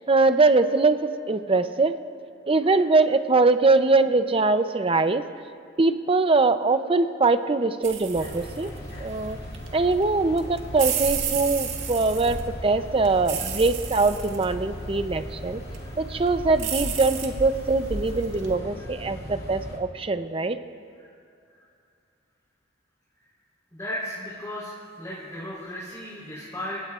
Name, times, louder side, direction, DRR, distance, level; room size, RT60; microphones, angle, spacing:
voice 1, 0.0-2.0 2.5-5.2 5.8-8.7 9.0-9.4 9.7-15.6 16.0-20.6, right 3 dB, 30° right, 10 dB, 0.6 m, -22 dB
sound 1, 7.8-18.5, right 6 dB, 85° right, 1.7 m, -34 dB
sound 2, 8.1-19.8, equal, 55° left, 2.4 m, -38 dB
voice 2, 23.7-24.7 25.0-26.8, left 1 dB, 15° left, -9 dB, 3.9 m, -35 dB
27.0 x 18.0 x 2.5 m, 2.4 s
head